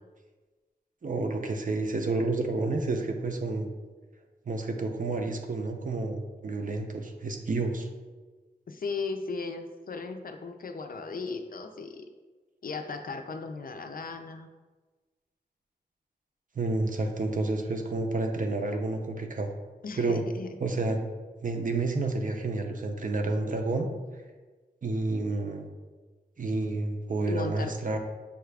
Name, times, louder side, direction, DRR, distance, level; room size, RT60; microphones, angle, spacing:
voice 1, 1.0-3.7 4.5-7.9 16.5-19.5 20.0-20.2 20.6-21.0 21.4-23.9 24.8-25.7 26.4-28.0, right 2 dB, 50° right, 4 dB, 0.5 m, -30 dB
voice 2, 8.7-12.0 12.6-14.5 19.8-20.5 20.9-21.0 27.3-27.7, left 4 dB, 55° left, 6 dB, 0.4 m, -36 dB
6.6 x 2.4 x 3.3 m, 1.3 s
wide cardioid pair, 85°, 17 cm